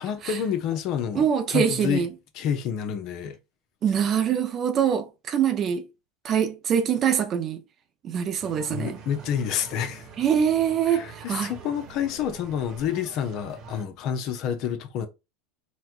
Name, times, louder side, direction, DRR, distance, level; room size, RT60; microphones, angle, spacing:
voice 1, 0.0-2.1 2.3-3.4 8.7-10.1 10.9-15.1, left 8 dB, 55° left, 0.6 m, -29 dB
voice 2, 1.1-2.1 3.8-5.9 6.2-7.6 8.0-9.0 10.2-11.5, right 8 dB, 40° right, 0.5 m, -24 dB
sound 1, 8.4-13.8, right 5 dB, 60° right, 1.3 m, -45 dB
4.1 x 2.1 x 2.4 m
hypercardioid pair, 90°, 0 cm